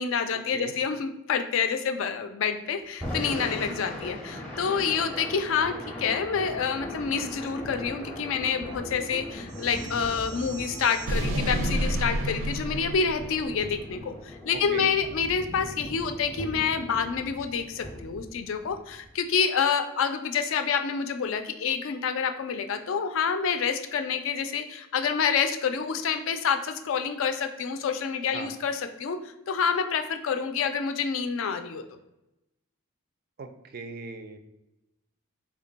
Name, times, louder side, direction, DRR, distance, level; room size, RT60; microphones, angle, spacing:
voice 1, 0.0-31.8, left 6 dB, 65° left, 8 dB, 0.4 m, -28 dB
Thunder / Rain, 2.9-19.1, left 1 dB, 5° left, 0.6 m, -39 dB
sound 1, 9.5-13.8, right 1 dB, 85° right, 0.6 m, -31 dB
voice 2, 14.5-14.9 28.3-28.5 33.4-34.4, right 4 dB, 45° right, 8 dB, 0.3 m, -39 dB
3.6 x 2.2 x 3.9 m, 0.91 s
head